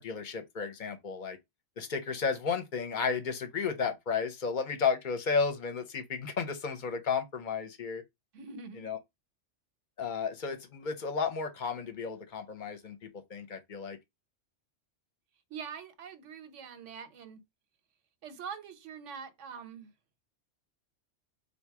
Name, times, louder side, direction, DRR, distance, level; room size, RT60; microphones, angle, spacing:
voice 1, 0.0-1.4 1.8-8.0 8.8-9.0 10.0-14.0, left 5 dB, 50° left, 0.7 m, -33 dB
voice 2, 8.3-8.8 15.5-17.4 18.2-19.9, right 6 dB, 90° right, 1.1 m, -44 dB
4.0 x 2.2 x 4.6 m
omnidirectional pair, 1.2 m